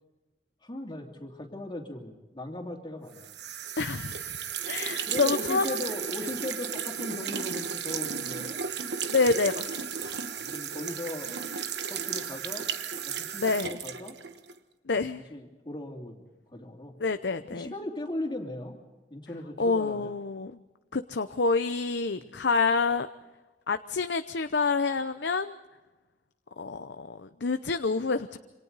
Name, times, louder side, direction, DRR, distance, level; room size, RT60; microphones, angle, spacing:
voice 1, 0.6-3.3 5.1-8.6 10.2-11.3 11.8-12.7 13.0-14.2 14.9-16.9 17.5-18.8 19.1-20.1 22.2-22.4, left 1 dB, 25° left, 1 dB, 2.9 m, -38 dB
sound 1, 3.1-14.6, right 7 dB, 75° right, 1.3 m, -34 dB
voice 2, 3.8-4.3 4.7-5.8 9.1-9.7 10.0-10.1 13.4-13.7 14.9-15.2 17.0-17.7 19.6-20.5 20.9-23.1 23.7-25.6 26.6-28.4, left 4 dB, 80° left, 9 dB, 0.7 m, -27 dB
28.0 x 26.0 x 4.1 m, 1.2 s
head